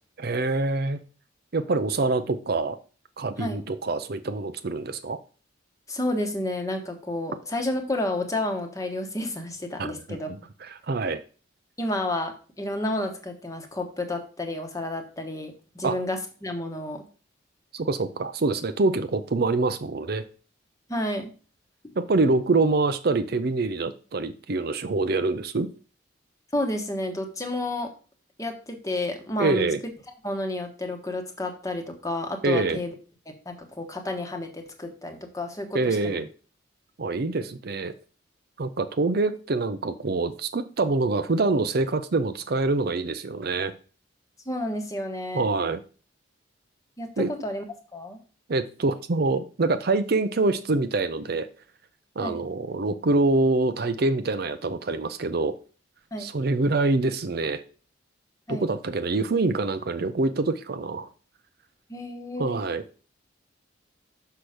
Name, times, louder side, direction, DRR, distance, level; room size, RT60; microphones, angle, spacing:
voice 1, 0.2-1.0 1.5-2.8 3.2-5.2 9.8-11.2 15.8-16.0 17.7-20.2 22.0-25.7 29.4-29.8 32.4-32.8 35.7-36.3 37.0-37.9 38.6-43.7 45.3-45.8 47.2-47.3 48.5-51.5 52.2-55.6 56.2-57.6 58.5-61.1 62.4-62.8, right 3 dB, 55° right, 10 dB, 0.6 m, -25 dB
voice 2, 5.9-10.3 11.8-17.0 20.9-21.3 26.5-27.9 28.4-29.7 30.2-32.9 33.4-36.2 44.5-45.4 47.0-47.6 47.9-48.2 52.2-52.4 56.1-56.3 58.5-58.7 61.9-62.6, left 1 dB, 15° left, 4 dB, 1.1 m, -31 dB
6.2 x 5.7 x 5.0 m, 0.37 s
head